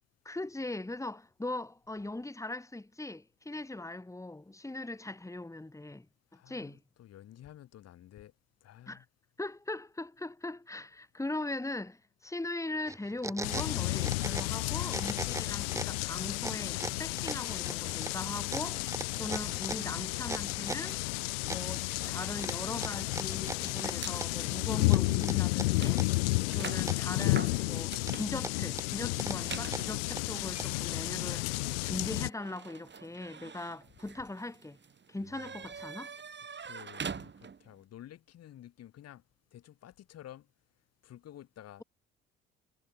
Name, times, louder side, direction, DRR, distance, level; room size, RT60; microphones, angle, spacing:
voice 1, 0.2-6.1 6.5-6.8 8.9-9.0 9.4-18.8 19.2-21.0 21.5-26.0 26.5-34.8 35.1-36.1, left 2 dB, 10° left, 2.4 m, -40 dB
voice 2, 6.3-8.3 8.6-9.1 35.2-35.6 36.6-39.2 39.5-40.5 41.0-41.8, left 12 dB, 60° left, 2.7 m, -52 dB
sound 1, 12.9-14.6 14.9-16.0 16.4-21.0 21.5-22.1 22.4-24.5 24.9-26.2 26.5-27.5 27.9-30.9, right 3 dB, 10° right, 0.6 m, -39 dB
sound 2, 13.4-32.3, left 25 dB, 85° left, 0.5 m, -32 dB
sound 3, 21.9-24.2 24.9-25.1 25.3-37.8, right 6 dB, 40° right, 5.3 m, -46 dB
hypercardioid pair, 55°, 29 cm